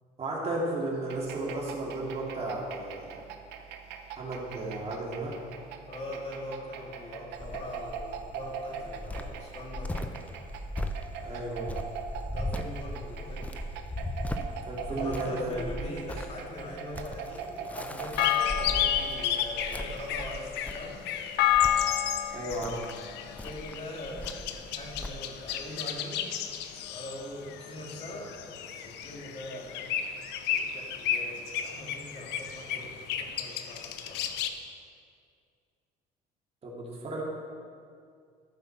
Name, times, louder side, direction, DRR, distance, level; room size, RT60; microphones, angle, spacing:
voice 1, 0.2-3.2 4.2-5.4 11.2-11.8 14.7-15.5 22.3-22.8 32.7-32.8 36.6-37.2, right 2 dB, 35° right, -3 dB, 2.5 m, -34 dB
sound 1, 1.1-20.4, right 7 dB, 90° right, 0.7 m, -43 dB
voice 2, 5.9-10.1 12.3-13.6 14.9-21.0 23.2-26.4 26.9-30.0 30.5-34.3, left 1 dB, 35° left, -2 dB, 2.2 m, -42 dB
Cricket, 7.3-25.1, left 1 dB, 10° left, 0.6 m, -38 dB
sound 2, 18.2-34.5, left 10 dB, 85° left, 0.7 m, -31 dB
13.5 x 5.4 x 6.0 m, 2.2 s
cardioid pair, 110°, 17 cm